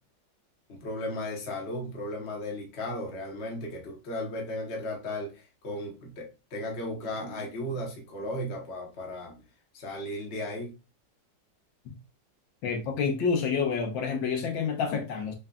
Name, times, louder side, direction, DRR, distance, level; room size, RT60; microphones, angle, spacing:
voice 1, 0.7-9.4 9.7-10.7, left 1 dB, 40° left, 1.1 m, -35 dB
voice 2, 12.6-15.3, left 5 dB, 85° left, 1.5 m, -28 dB
3.8 x 3.5 x 2.2 m
omnidirectional pair, 2.0 m